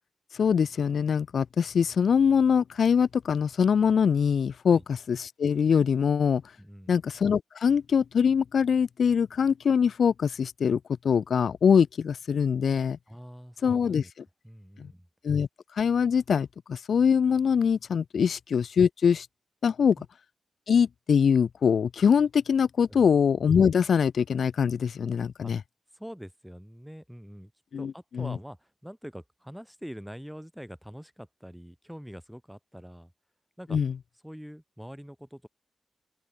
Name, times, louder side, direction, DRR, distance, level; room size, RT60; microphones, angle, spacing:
voice 1, 0.3-6.4 6.9-10.8 11.0-13.0 13.6-14.0 14.8-14.9 15.2-15.5 15.7-19.3 19.6-20.0 20.7-25.6 27.7-28.3 33.7-33.9, left 7 dB, 75° left, 0.4 m, -23 dB
voice 2, 6.6-6.9 13.1-14.1 14.4-15.1 18.2-18.3 20.0-20.1 22.9-23.1 25.4-25.5 25.9-27.5 27.8-33.1 33.6-33.8 34.2-35.5, equal, ahead, 2.2 m, -44 dB
open air
wide cardioid pair, 165°, 0 cm